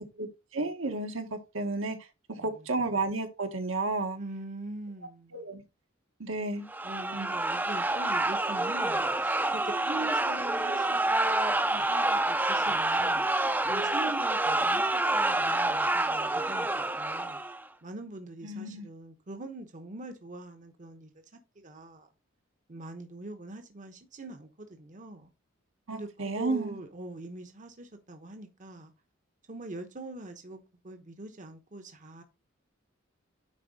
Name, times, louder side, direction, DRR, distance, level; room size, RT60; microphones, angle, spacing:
voice 1, 0.2-2.0 2.4-4.2 5.3-5.6 6.2-6.7 7.1-7.3 18.4-18.9 25.9-26.8, right 3 dB, 75° right, 1.6 m, -32 dB
voice 2, 2.4-2.8 4.1-5.4 6.8-13.2 13.7-17.4 17.8-21.1 21.6-22.1 22.7-25.3 25.9-28.9 29.5-32.2, right 2 dB, 40° right, 1.0 m, -43 dB
sound 1, 6.7-17.6, right 2 dB, 10° right, 0.6 m, -28 dB
9.9 x 4.2 x 4.0 m
head